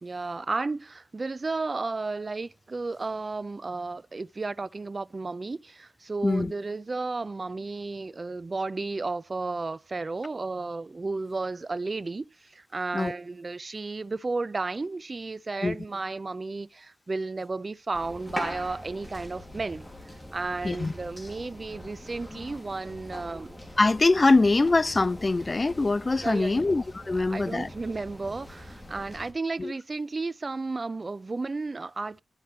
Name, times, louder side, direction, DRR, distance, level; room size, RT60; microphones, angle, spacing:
voice 1, 0.0-19.9 20.3-23.5 26.2-26.7 27.1-32.2, right 3 dB, 45° right, 0.4 m, -33 dB
sound 1, 17.9-29.3, left 1 dB, 20° left, 2.9 m, -42 dB
voice 2, 23.8-27.7 29.6-29.7, left 3 dB, 40° left, 0.4 m, -23 dB
11.5 x 5.4 x 3.1 m
cardioid pair, 55°, 0 cm